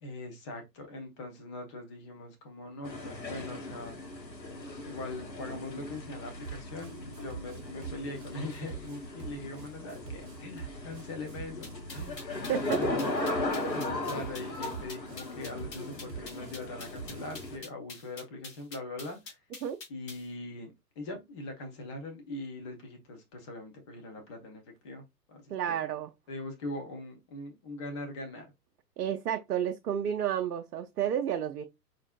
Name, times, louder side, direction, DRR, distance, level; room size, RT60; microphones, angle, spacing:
voice 1, 0.0-4.0 4.9-12.2 12.7-13.1 13.6-19.4 19.9-25.0 25.3-25.7 26.3-28.5, left 2 dB, 20° left, 0.4 m, -41 dB
sound 1, 2.8-17.6, left 2 dB, 90° left, 0.9 m, -37 dB
sound 2, 6.4-17.5, right 6 dB, 30° right, 1.0 m, -46 dB
sound 3, 11.6-20.3, left 3 dB, 45° left, 2.4 m, -46 dB
voice 2, 12.5-12.8 19.6-19.8 25.5-26.1 29.0-31.7, right 9 dB, 70° right, 0.6 m, -31 dB
5.1 x 2.5 x 2.2 m
figure-of-eight pair, 110°, 49 cm